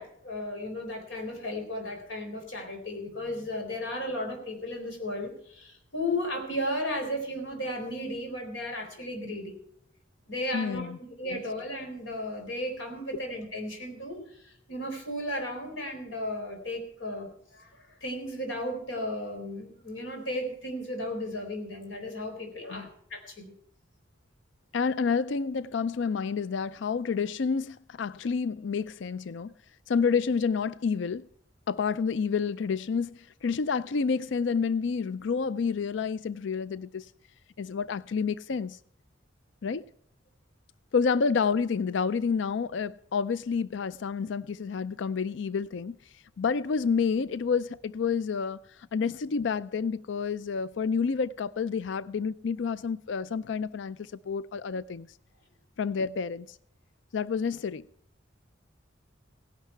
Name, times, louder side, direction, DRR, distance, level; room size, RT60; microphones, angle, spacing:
voice 1, 0.0-9.6 10.3-23.5, left 1 dB, 85° left, 4.2 m, -35 dB
voice 2, 10.5-11.0 11.2-11.4 22.6-22.9 24.7-29.5 29.9-31.3 31.7-37.1 37.6-38.8 39.6-39.8 40.9-46.0 46.4-48.6 48.9-55.1 55.8-56.5 57.1-57.9, left 5 dB, 65° left, 0.4 m, -29 dB
17.0 x 11.5 x 4.5 m
head